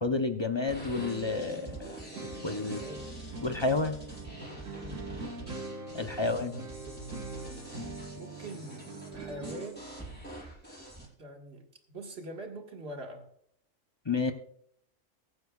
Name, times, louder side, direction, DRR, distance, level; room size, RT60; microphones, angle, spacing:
voice 1, 0.0-1.9 2.4-2.8 3.4-4.0 5.9-6.5 14.1-14.3, left 3 dB, 25° left, 7 dB, 0.6 m, -30 dB
sound 1, 0.6-9.7, right 3 dB, 80° right, 1.8 m, -43 dB
sound 2, 0.7-11.0, right 1 dB, 5° left, 5.5 m, -46 dB
voice 2, 2.6-3.1 4.8-5.2 6.0-7.7 8.2-9.9 11.2-13.3, right 1 dB, 50° right, 3 dB, 2.0 m, -45 dB
22.5 x 9.4 x 2.4 m, 0.69 s
omnidirectional pair, 1.4 m